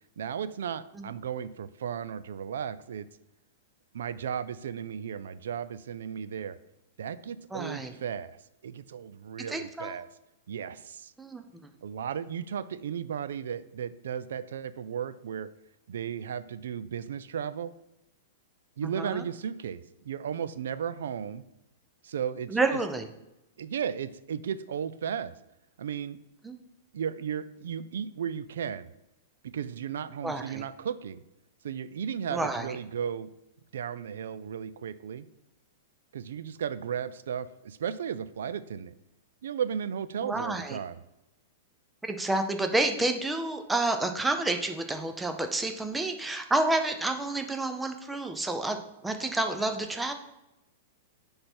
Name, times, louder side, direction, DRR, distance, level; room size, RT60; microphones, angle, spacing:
voice 1, 0.2-3.1 3.9-6.6 7.0-8.4 8.6-10.1 10.5-11.1 11.8-15.5 15.9-17.7 18.8-21.4 22.0-22.8 23.6-25.3 25.8-26.2 26.9-28.9 29.5-31.2 31.6-33.3 33.7-35.3 36.1-38.9 39.4-41.0, right 8 dB, 80° right, 15 dB, 0.4 m, -35 dB
voice 2, 7.5-7.9 9.5-10.0 11.2-11.4 18.8-19.2 22.5-23.1 26.4-26.6 30.2-30.6 32.3-32.8 40.2-40.8 42.0-48.8 49.0-50.1, right 2 dB, 5° right, 5 dB, 0.4 m, -29 dB
10.0 x 3.4 x 4.3 m, 0.91 s
supercardioid pair, 175°, 0 cm